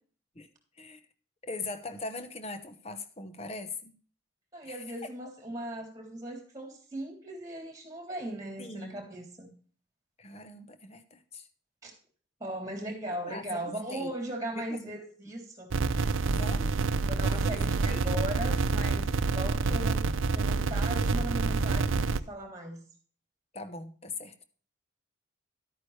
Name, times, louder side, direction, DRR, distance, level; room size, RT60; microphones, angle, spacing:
voice 1, 1.4-3.9 4.7-5.1 8.6-8.9 10.2-11.5 13.1-14.1 14.5-14.9 16.3-16.8 17.3-18.1 23.5-24.3, left 3 dB, 30° left, 1.0 m, -41 dB
voice 2, 4.5-9.5 11.8-11.9 12.4-16.1 17.1-22.8, right 1 dB, 20° right, 3.3 m, -38 dB
sound 1, 15.7-22.2, right 3 dB, 90° right, 0.6 m, -27 dB
12.0 x 9.0 x 3.3 m
head